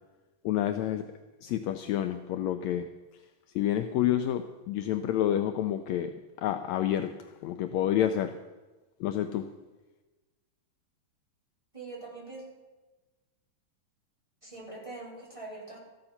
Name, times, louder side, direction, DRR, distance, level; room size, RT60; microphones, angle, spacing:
voice 1, 0.4-1.1 1.4-2.9 3.5-6.1 6.4-7.1 7.4-8.4 9.0-9.5, left 11 dB, 85° left, 8 dB, 1.6 m, -28 dB
voice 2, 11.7-12.4 14.4-15.8, right 2 dB, 10° right, -4 dB, 4.2 m, -43 dB
14.0 x 11.5 x 5.8 m, 1.2 s
omnidirectional pair, 3.8 m